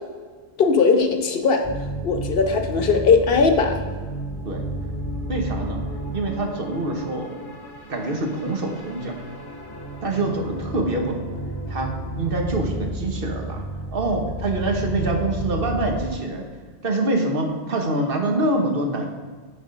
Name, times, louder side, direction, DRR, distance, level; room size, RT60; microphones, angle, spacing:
voice 1, 0.6-1.6 2.0-3.8, left 5 dB, 60° left, 5 dB, 1.0 m, -19 dB
sound 1, 1.6-16.0, right 1 dB, 25° left, 0.9 m, -32 dB
voice 2, 5.3-5.8 6.1-7.3 7.9-9.1 10.0-11.2 11.7-11.9 12.2-13.6 13.9-16.5 16.8-19.1, right 2 dB, 55° right, 3 dB, 1.3 m, -25 dB
9.4 x 4.2 x 5.1 m, 1.5 s
omnidirectional pair, 1.1 m